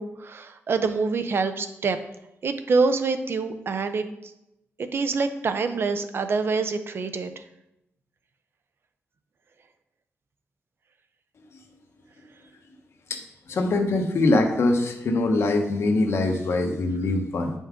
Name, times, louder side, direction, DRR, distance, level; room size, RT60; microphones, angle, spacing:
voice 1, 0.0-2.0 2.4-4.0 4.8-7.4, right 4 dB, 55° right, 9 dB, 0.6 m, -26 dB
voice 2, 13.5-17.5, left 2 dB, 65° left, 4 dB, 1.1 m, -23 dB
8.7 x 5.4 x 3.7 m, 0.86 s
wide cardioid pair, 115°, 5 cm